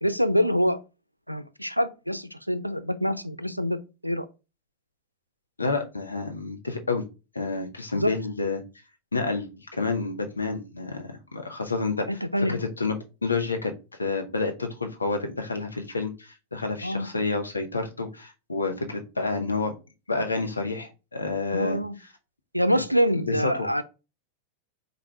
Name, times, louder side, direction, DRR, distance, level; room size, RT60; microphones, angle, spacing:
voice 1, 0.0-0.8 1.3-3.8 4.0-4.2 7.9-8.1 12.1-12.6 16.8-17.1 21.5-22.0 22.5-23.8, equal, 90° right, 0.4 m, -25 dB
voice 2, 5.6-7.0 7.3-8.6 9.1-12.1 12.5-13.0 13.2-13.7 14.0-19.7 20.1-21.8 23.3-23.7, left 3 dB, 80° left, 0.9 m, -29 dB
4.7 x 2.5 x 3.2 m
figure-of-eight pair, 90°, 0 cm